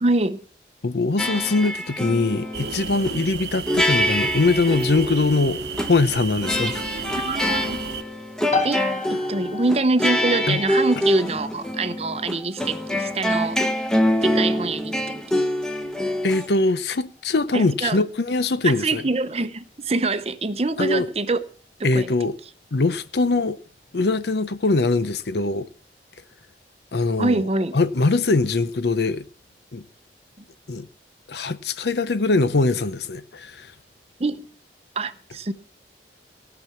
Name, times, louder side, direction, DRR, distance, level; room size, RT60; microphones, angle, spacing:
voice 1, 0.0-0.4 7.1-7.8 8.6-13.6 14.2-15.2 17.5-18.0 18.6-21.4 21.8-22.1 27.2-27.8 34.2-34.5 35.0-35.5, right 3 dB, 35° right, 0.7 m, -25 dB
voice 2, 0.8-5.6 5.9-6.8 10.5-10.6 16.2-19.0 20.8-21.1 21.8-22.4 22.7-23.6 23.9-25.7 26.9-27.4 27.7-29.3 29.7-29.8 30.7-30.9 31.3-33.7, left 3 dB, 70° left, 0.7 m, -22 dB
sound 1, 1.2-3.1 3.7-5.9 6.4-16.5, equal, 5° left, 1.0 m, -25 dB
sound 2, 2.5-8.0, right 6 dB, 70° right, 0.9 m, -33 dB
sound 3, 8.5-23.0, left 3 dB, 35° left, 1.1 m, -37 dB
16.5 x 6.0 x 7.2 m
head